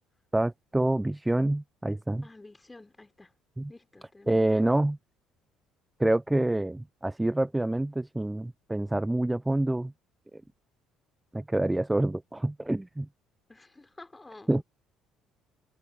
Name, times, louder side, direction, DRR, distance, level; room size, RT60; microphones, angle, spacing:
voice 1, 0.3-2.3 3.6-3.7 4.3-5.0 6.0-9.9 11.3-13.1 14.5-14.6, right 1 dB, 10° right, 0.4 m, -27 dB
voice 2, 2.2-3.3 3.7-4.7 13.5-14.6, left 2 dB, 15° left, 4.0 m, -51 dB
figure-of-eight pair, 50°, 0 cm